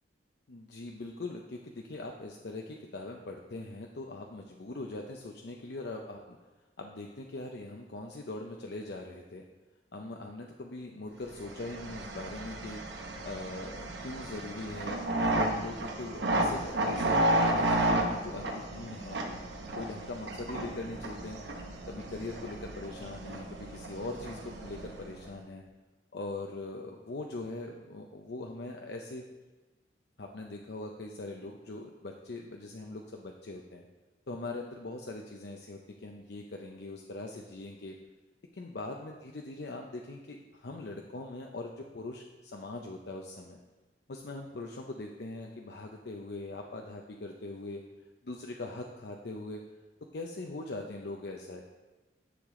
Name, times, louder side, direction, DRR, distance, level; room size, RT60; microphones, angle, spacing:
voice 1, 0.5-6.4 6.8-9.4 9.9-12.8 13.2-19.2 19.8-21.4 21.9-25.6 26.1-29.2 30.2-33.8 34.3-37.9 38.5-43.6 44.1-47.8 48.2-49.6 50.1-51.6, left 2 dB, 65° left, 1 dB, 0.6 m, -41 dB
sound 1, 11.4-25.3, right 1 dB, 75° right, 1.0 m, -32 dB
10.0 x 6.7 x 3.7 m, 1.2 s
head